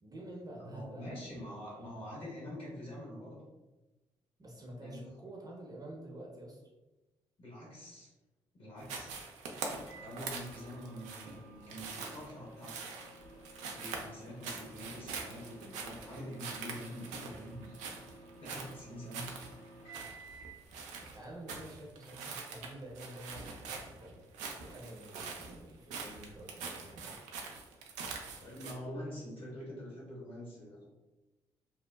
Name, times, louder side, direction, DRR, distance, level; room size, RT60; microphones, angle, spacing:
voice 1, 0.0-2.0 4.4-6.6 21.1-24.2 24.6-27.2, right 1 dB, 30° right, -2 dB, 0.7 m, -49 dB
voice 2, 0.6-3.4 4.8-5.0 7.4-8.1 8.5-9.1 9.9-12.8 13.7-17.8 18.4-19.3 28.4-30.9, equal, 45° left, -5 dB, 1.5 m, -45 dB
sound 1, 8.8-28.7, right 4 dB, 70° right, 0.4 m, -44 dB
Microwave oven, 9.9-20.6, right 2 dB, 70° left, 1.0 m, -54 dB
2.6 x 2.0 x 2.3 m, 1.1 s
hypercardioid pair, 45°, 13 cm